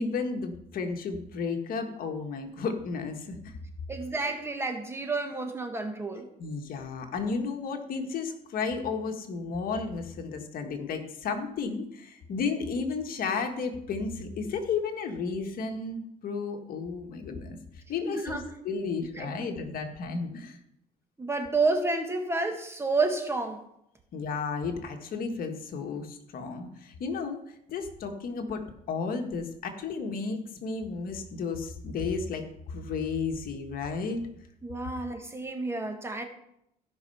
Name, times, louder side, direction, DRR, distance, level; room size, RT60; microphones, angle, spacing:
voice 1, 0.0-3.6 6.4-20.6 24.1-34.2 35.1-35.2, left 4 dB, 60° left, 1.6 m, -33 dB
voice 2, 3.9-6.3 18.0-18.4 19.2-19.3 21.2-23.6 34.6-36.2, right 3 dB, 15° right, 1.6 m, -30 dB
16.0 x 5.6 x 5.5 m
cardioid pair, 110°, 17 cm